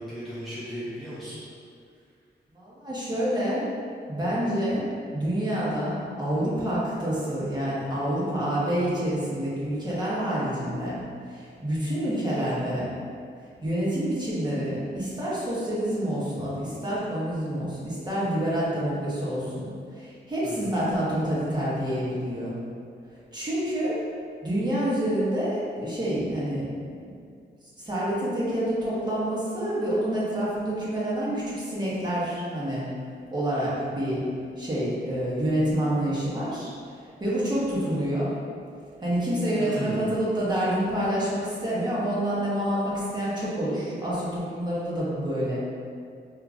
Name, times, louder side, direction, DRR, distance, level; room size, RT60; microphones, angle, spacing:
voice 1, 0.0-1.4 20.4-20.7 39.5-40.1, equal, ahead, -11 dB, 0.6 m, -35 dB
voice 2, 2.5-3.6 4.1-4.8 5.1-10.9 11.3-12.9 13.6-22.5 23.3-24.0 24.4-26.7 27.8-32.8 33.3-34.2 34.6-36.7 37.2-38.3 39.0-45.6, right 1 dB, 25° right, -9 dB, 1.1 m, -27 dB
5.0 x 2.8 x 2.4 m, 2.3 s
wide cardioid pair, 130°, 18 cm